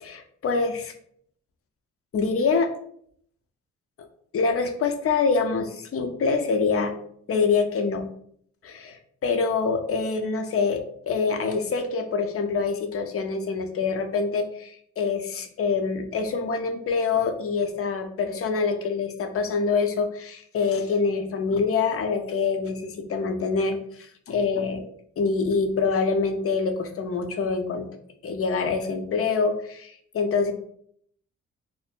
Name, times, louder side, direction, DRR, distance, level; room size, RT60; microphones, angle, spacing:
voice 1, 0.0-0.9 2.1-2.7 4.3-6.9 7.3-8.1 8.6-24.8 25.2-27.9 28.2-30.5, left 4 dB, 50° left, 6 dB, 0.6 m, -25 dB
2.7 x 2.1 x 3.4 m, 0.64 s
supercardioid pair, 55°, 30 cm